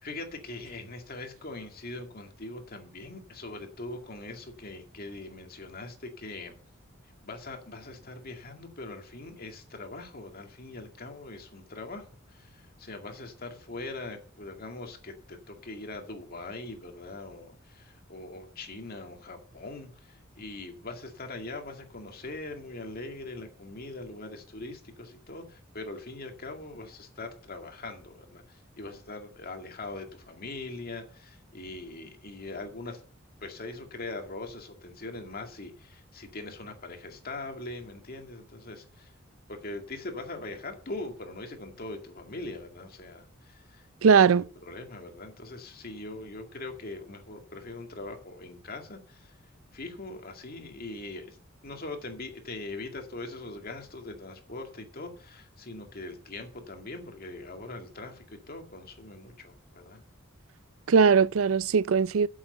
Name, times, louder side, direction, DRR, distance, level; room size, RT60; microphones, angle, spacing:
voice 1, 0.0-6.5 7.2-33.0 33.4-39.1 39.5-49.3 49.7-51.4 51.6-60.0, left 2 dB, 50° left, 2.1 m, -41 dB
voice 2, 44.0-44.5 60.9-62.3, right 6 dB, 90° right, 0.4 m, -20 dB
8.2 x 7.9 x 6.8 m
head